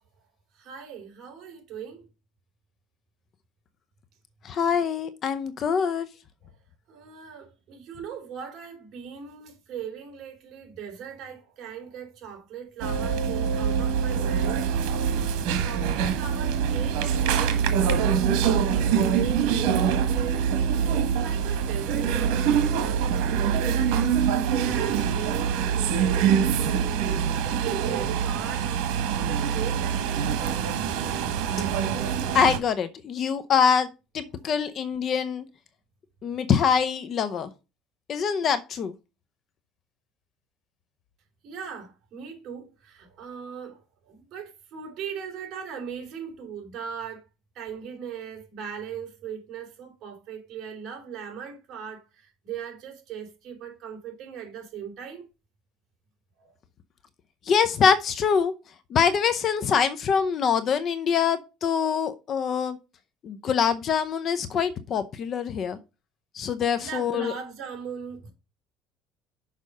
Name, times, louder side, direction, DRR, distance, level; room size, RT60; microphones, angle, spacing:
voice 1, 0.6-2.0 6.9-14.7 15.6-18.6 19.0-23.3 23.6-27.0 27.4-30.3 41.4-47.2 47.5-55.3 56.4-56.5 66.8-68.3, right 7 dB, 45° right, 3.1 m, -39 dB
voice 2, 4.4-6.1 32.3-35.4 36.2-37.5 38.1-38.9 57.5-58.5 58.9-62.8 63.2-65.8 66.3-67.3, left 7 dB, 35° left, 0.6 m, -24 dB
sound 1, 12.8-32.6, right 7 dB, 85° right, 1.3 m, -24 dB
6.5 x 5.1 x 5.3 m
cardioid pair, 155°, 0 cm